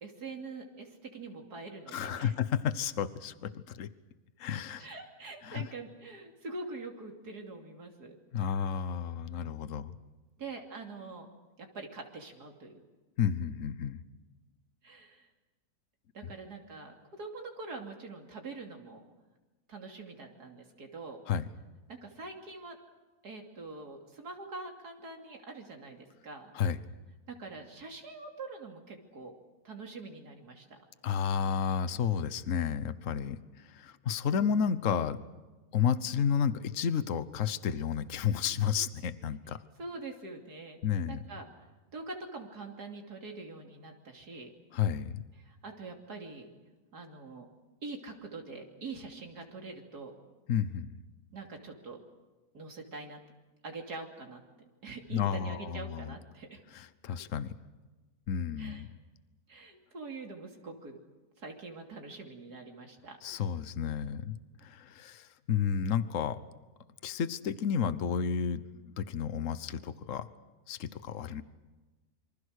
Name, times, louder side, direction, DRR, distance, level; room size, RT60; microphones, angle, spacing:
voice 1, 0.0-2.3 4.8-8.2 10.4-11.3 11.6-12.8 14.8-15.3 16.1-19.0 19.7-21.2 21.9-22.8 23.2-26.5 27.3-29.3 29.6-30.8 39.8-40.8 41.1-41.7 41.9-44.5 45.4-46.5 46.9-47.5 47.8-50.2 51.3-52.0 52.5-53.2 53.6-54.4 54.8-56.6 58.6-58.9 59.5-61.0 61.4-63.2, right 3 dB, 85° right, 2 dB, 3.4 m, -44 dB
voice 2, 1.9-3.9 4.4-4.9 5.4-5.6 8.3-10.0 13.2-14.0 16.2-16.3 21.3-21.4 26.5-26.8 31.0-35.2 35.7-39.6 40.8-41.2 44.7-45.2 50.5-50.9 55.1-56.1 56.7-57.5 58.3-58.9 63.2-66.4 67.0-70.3 70.7-71.4, left 7 dB, 55° left, 14 dB, 1.3 m, -31 dB
27.0 x 25.0 x 6.5 m, 1.2 s
omnidirectional pair, 1.6 m